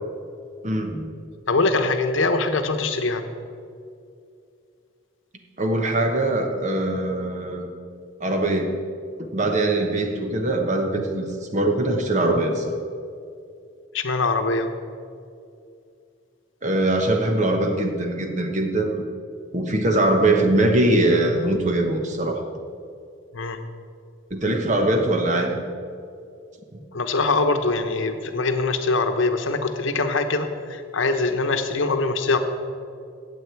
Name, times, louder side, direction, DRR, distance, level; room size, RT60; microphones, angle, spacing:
voice 1, 0.6-1.1 5.6-7.7 8.2-8.8 9.2-12.8 16.6-19.0 19.5-22.4 24.3-25.6 26.7-26.8, right 1 dB, 35° right, 4 dB, 1.1 m, -22 dB
voice 2, 1.5-3.2 13.9-14.7 23.3-23.6 26.9-32.4, left 3 dB, 70° left, 7 dB, 0.9 m, -23 dB
15.0 x 8.4 x 4.6 m, 2.4 s
head